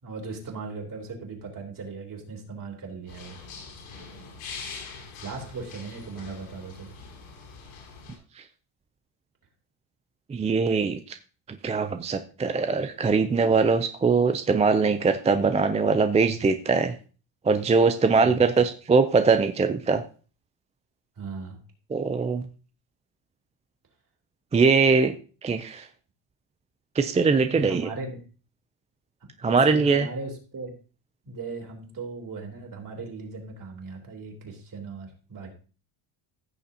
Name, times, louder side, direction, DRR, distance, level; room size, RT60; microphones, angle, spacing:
voice 1, 0.0-3.4 5.2-7.0 18.1-18.5 21.2-21.6 27.5-28.2 29.4-30.7 31.2-35.5, right 3 dB, 40° right, 0 dB, 3.5 m, -38 dB
sound 1, 3.1-8.2, left 5 dB, 85° left, 5.6 m, -43 dB
voice 2, 10.3-11.0 11.6-16.9 17.5-20.0 21.9-22.4 24.5-25.1 25.4-25.8 27.0-27.9 29.4-30.1, right 4 dB, 15° right, 8 dB, 0.3 m, -22 dB
15.5 x 6.7 x 2.8 m, 0.36 s
cardioid pair, 125°, 50 cm